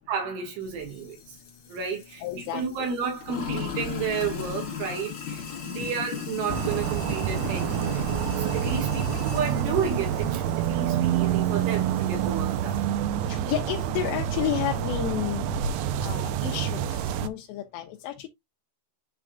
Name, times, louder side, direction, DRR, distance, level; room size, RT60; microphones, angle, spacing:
voice 1, 0.1-1.4 1.7-8.1 8.4-12.8, right 6 dB, 75° right, 4.0 m, -32 dB
Sink (filling or washing), 0.6-12.9, left 6 dB, 60° left, 1.3 m, -38 dB
voice 2, 2.2-2.9 5.8-5.9 11.4-11.6 13.3-15.5 16.0-18.3, left 12 dB, 85° left, 2.6 m, -31 dB
sound 1, 6.5-17.3, right 9 dB, 90° right, 2.6 m, -27 dB
11.0 x 3.7 x 2.3 m
omnidirectional pair, 6.0 m